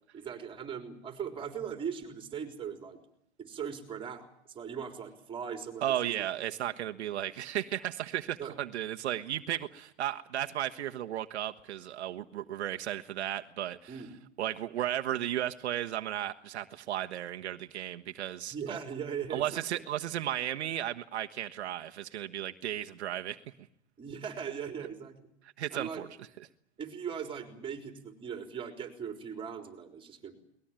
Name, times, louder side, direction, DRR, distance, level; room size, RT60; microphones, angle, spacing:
voice 1, 0.1-3.0 3.4-6.1 8.4-8.6 13.9-14.2 18.5-19.8 24.0-25.3 25.7-26.0 26.8-30.3, right 7 dB, 15° right, 6 dB, 4.0 m, -39 dB
voice 2, 5.8-14.0 14.4-18.8 19.3-23.4 25.6-26.1, right 12 dB, 70° right, 6 dB, 1.4 m, -34 dB
22.5 x 20.0 x 9.0 m, 0.73 s
hypercardioid pair, 145°, 34 cm